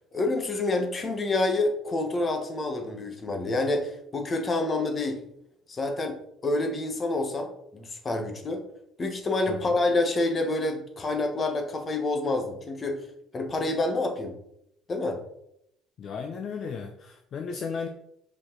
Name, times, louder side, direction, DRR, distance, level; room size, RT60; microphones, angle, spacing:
voice 1, 0.1-5.2 5.7-8.6 9.0-13.0 13.3-14.4 14.9-15.2, left 2 dB, 25° left, 4 dB, 1.2 m, -28 dB
voice 2, 16.0-17.9, left 5 dB, 45° left, 5 dB, 0.6 m, -34 dB
6.3 x 5.1 x 3.8 m, 0.76 s
cardioid pair, 145°, 0 cm